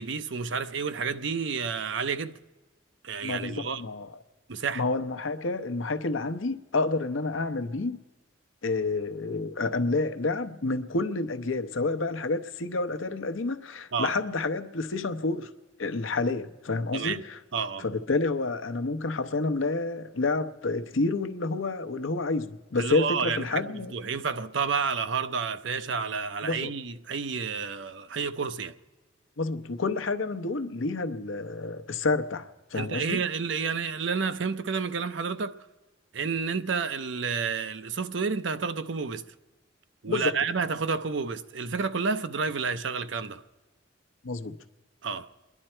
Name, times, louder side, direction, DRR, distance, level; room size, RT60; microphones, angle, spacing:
voice 1, 0.0-2.4 3.0-3.8 4.5-4.8 13.9-14.1 16.9-17.2 17.5-17.9 22.8-28.7 32.7-35.6 36.1-39.2 40.0-43.4 45.0-45.3, right 5 dB, 65° right, 0.6 m, -30 dB
voice 2, 3.2-4.2 4.7-8.0 8.6-15.5 15.8-17.4 17.8-23.9 26.4-26.7 29.4-33.2 40.1-40.3 44.2-44.6, left 3 dB, 80° left, 0.8 m, -29 dB
29.5 x 11.0 x 4.4 m
head